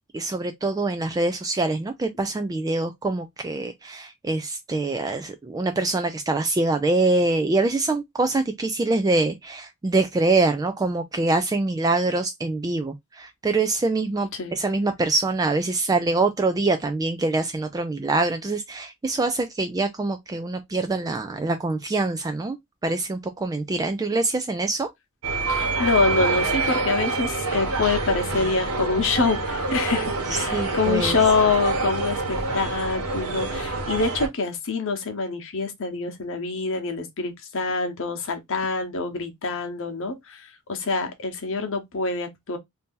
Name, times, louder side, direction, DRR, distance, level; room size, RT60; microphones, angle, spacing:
voice 1, 0.1-22.6 22.8-24.9 30.3-31.2, right 2 dB, 15° right, 0.3 m, -24 dB
sound 1, 25.2-34.3, right 3 dB, 80° right, 1.2 m, -26 dB
voice 2, 25.5-42.6, left 4 dB, 65° left, 0.9 m, -25 dB
2.8 x 2.6 x 3.6 m
head